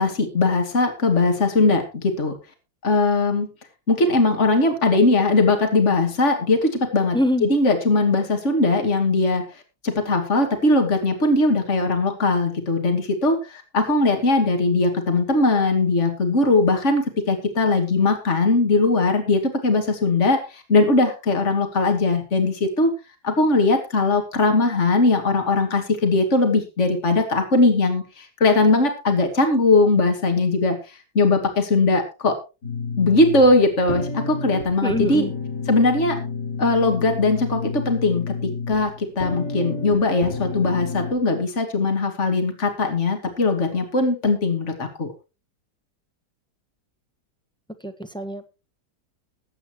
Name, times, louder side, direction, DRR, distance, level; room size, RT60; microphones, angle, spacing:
voice 1, 0.0-2.4 2.8-3.5 3.9-9.4 9.8-22.9 23.2-30.8 31.1-32.4 33.0-35.3 35.7-36.2 36.6-45.1, left 3 dB, 45° left, 5 dB, 2.7 m, -20 dB
voice 2, 7.1-7.5 34.8-35.3 47.8-48.5, equal, 5° left, 9 dB, 1.0 m, -24 dB
sound 1, 32.6-41.1, left 4 dB, 85° left, 5.1 m, -30 dB
21.5 x 8.7 x 3.0 m, 0.29 s
omnidirectional pair, 1.8 m